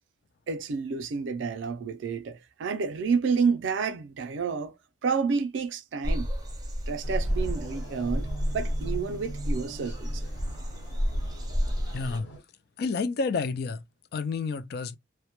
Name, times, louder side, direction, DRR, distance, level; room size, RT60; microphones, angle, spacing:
voice 1, 0.5-4.7 5.0-6.3 6.9-10.2, right 5 dB, 85° right, 0.4 m, -29 dB
sound 1, 6.0-12.2, equal, 20° right, 0.5 m, -30 dB
sound 2, 7.0-12.4, right 3 dB, 85° left, 1.2 m, -45 dB
voice 2, 11.9-12.3 12.8-13.8 14.1-15.0, left 4 dB, 55° left, 0.3 m, -29 dB
2.1 x 2.1 x 2.9 m
head